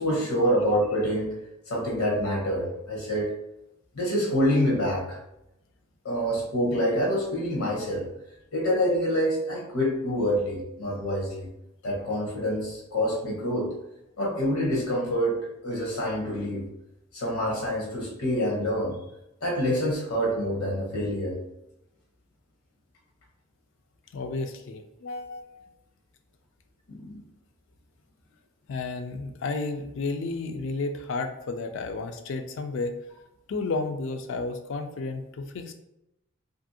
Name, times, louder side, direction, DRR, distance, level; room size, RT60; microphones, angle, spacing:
voice 1, 0.0-1.3 1.7-3.3 3.9-5.2 6.0-8.1 8.5-11.5 11.8-13.7 14.2-16.7 17.1-19.0 19.4-21.4 26.9-27.2, equal, 75° left, -2 dB, 0.8 m, -26 dB
voice 2, 24.1-25.7 28.7-33.0 33.5-35.7, left 3 dB, 60° left, 7 dB, 0.3 m, -32 dB
2.7 x 2.6 x 2.6 m, 0.86 s
head